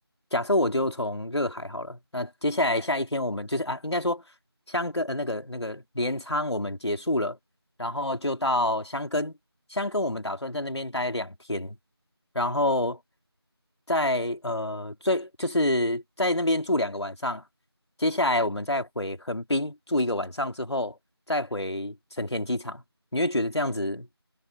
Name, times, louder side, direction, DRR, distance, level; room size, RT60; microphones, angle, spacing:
voice 1, 0.3-4.2 4.7-7.4 7.8-9.3 9.7-11.8 12.3-13.0 13.9-17.4 18.0-21.0 21.3-22.8 23.1-24.1, left 1 dB, 85° left, 4.1 m, -27 dB
figure-of-eight pair, 180°, 14 cm